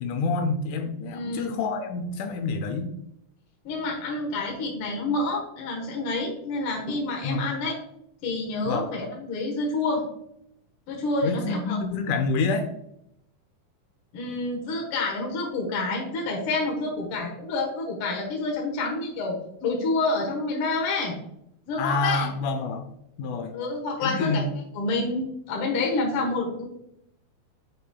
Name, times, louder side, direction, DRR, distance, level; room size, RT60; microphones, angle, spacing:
voice 1, 0.0-2.9 7.2-7.4 8.7-8.9 11.2-12.7 21.8-22.9 23.2-23.5 24.0-24.5, left 3 dB, 80° left, 6 dB, 1.9 m, -27 dB
voice 2, 1.0-1.6 3.6-7.7 8.2-10.0 10.9-11.8 14.1-21.2 21.7-22.3 23.5-24.4 24.7-26.7, left 3 dB, 60° left, -1 dB, 1.5 m, -28 dB
9.1 x 5.0 x 2.2 m, 0.77 s
omnidirectional pair, 4.1 m